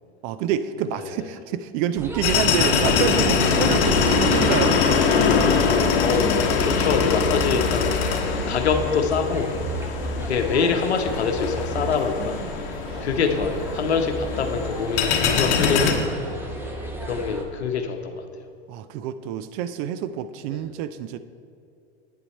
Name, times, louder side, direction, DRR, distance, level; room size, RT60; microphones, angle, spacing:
voice 1, 0.2-5.0 12.2-12.5 12.8-13.1 18.7-21.2, right 9 dB, 40° right, 13 dB, 0.4 m, -28 dB
sound 1, 1.9-17.4, right 1 dB, 5° right, 1.0 m, -34 dB
sound 2, 2.2-15.9, left 5 dB, 60° left, 1.1 m, -23 dB
voice 2, 5.9-6.3 6.6-8.0 8.5-9.5 10.2-12.4 13.0-16.0 17.0-18.2 20.5-20.6, left 5 dB, 85° left, 6 dB, 0.9 m, -25 dB
8.6 x 6.9 x 4.2 m, 2.5 s
hypercardioid pair, 100°, 32 cm